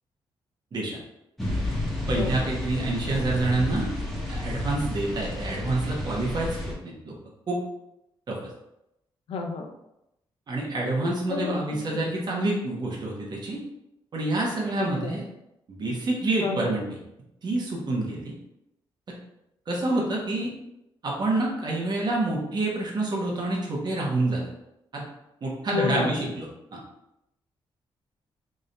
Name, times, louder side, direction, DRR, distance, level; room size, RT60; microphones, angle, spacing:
sound 1, 1.4-6.7, left 1 dB, ahead, 1.0 m, -31 dB
voice 1, 2.1-3.9 4.3-7.2 7.5-7.6 8.3-8.4 10.5-13.6 14.1-15.2 15.7-16.9 17.4-18.3 19.7-20.5 21.0-24.5 24.9-25.1 25.4-26.5 26.7-26.8, right 2 dB, 45° right, -3 dB, 1.1 m, -27 dB
voice 2, 9.3-9.7 11.3-11.8 14.8-15.1 16.4-16.7 25.7-26.2, left 4 dB, 75° left, 3 dB, 0.6 m, -30 dB
3.5 x 2.7 x 3.3 m, 0.86 s
cardioid pair, 105°, 10 cm